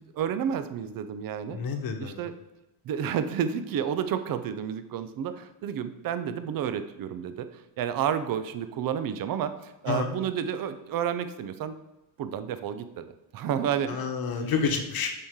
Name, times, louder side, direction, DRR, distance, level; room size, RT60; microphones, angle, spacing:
voice 1, 0.0-1.6 2.0-2.3 2.8-11.8 12.2-13.0 13.3-14.0, right 8 dB, 45° right, 11 dB, 0.7 m, -30 dB
voice 2, 1.5-2.2 9.9-10.1 13.9-15.1, left 5 dB, 45° left, 5 dB, 1.2 m, -29 dB
6.8 x 4.9 x 3.7 m, 1.0 s
supercardioid pair, 95°, 49 cm